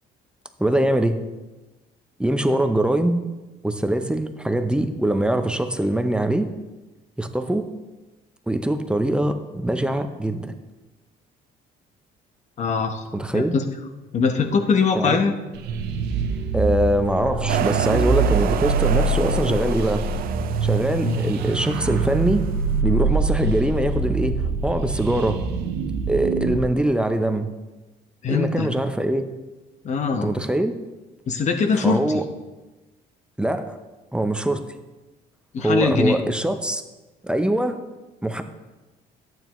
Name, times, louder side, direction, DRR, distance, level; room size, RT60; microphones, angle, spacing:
voice 1, 0.6-1.2 2.2-3.3 3.6-6.5 7.2-7.6 8.5-10.5 13.1-13.5 14.9-15.2 16.5-20.0 20.6-22.4 22.8-25.4 26.1-27.5 28.3-29.3 30.1-30.7 31.8-32.2 33.4-33.8 34.1-34.6 35.6-36.8 37.2-37.8 38.2-38.4, right 1 dB, 5° right, 7 dB, 0.6 m, -23 dB
voice 2, 12.6-13.0 13.3-13.6 14.1-15.3 21.0-21.2 28.2-28.7 29.8-30.3 31.3-32.2 35.5-36.2, left 5 dB, 45° left, 6 dB, 1.0 m, -22 dB
sound 1, 15.5-26.6, right 3 dB, 85° right, 0.8 m, -24 dB
sound 2, 17.5-22.5, right 9 dB, 60° right, 0.5 m, -30 dB
12.0 x 9.1 x 3.0 m, 1.1 s
cardioid pair, 110°, 17 cm